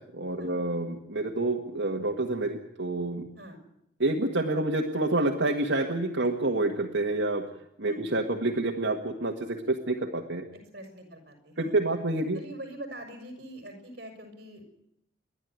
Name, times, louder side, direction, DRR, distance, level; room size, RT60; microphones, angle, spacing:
voice 1, 0.1-3.3 4.0-7.5 7.8-10.5 11.6-12.4, right 2 dB, 75° right, 1 dB, 1.8 m, -28 dB
voice 2, 10.7-11.7 12.3-14.6, right 1 dB, 50° right, 4 dB, 5.8 m, -43 dB
29.0 x 11.5 x 9.4 m, 0.79 s
head